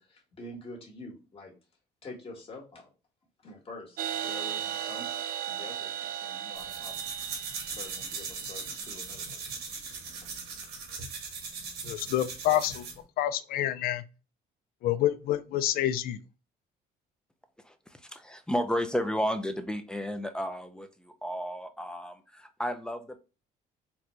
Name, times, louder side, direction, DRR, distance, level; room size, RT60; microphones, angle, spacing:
voice 1, 0.0-1.5 2.0-2.9 3.4-7.1 7.6-9.4 10.2-10.3, left 2 dB, 35° left, 1.4 m, -47 dB
sound 1, 4.0-9.5, right 10 dB, 55° right, 0.4 m, -37 dB
sound 2, 6.5-13.0, right 5 dB, 80° right, 1.1 m, -39 dB
voice 2, 11.9-12.9 13.2-14.0 14.8-16.2, left 13 dB, 65° left, 0.4 m, -28 dB
voice 3, 17.6-23.2, equal, 5° left, 0.4 m, -33 dB
4.1 x 2.2 x 3.0 m
cardioid pair, 110°, 17 cm